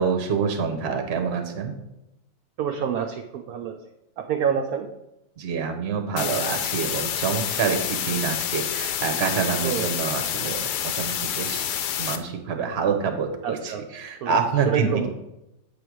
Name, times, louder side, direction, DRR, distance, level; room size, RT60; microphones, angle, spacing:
voice 1, 0.0-1.7 5.4-11.7 12.0-15.1, right 6 dB, 45° right, 5 dB, 0.9 m, -26 dB
voice 2, 2.6-3.8 4.3-4.9 9.6-9.9 13.4-13.8 14.2-14.4 14.7-15.1, right 8 dB, 75° right, 3 dB, 0.8 m, -27 dB
sound 1, 6.2-12.2, left 9 dB, 70° left, 1.1 m, -28 dB
8.4 x 3.4 x 6.2 m, 0.92 s
omnidirectional pair, 2.1 m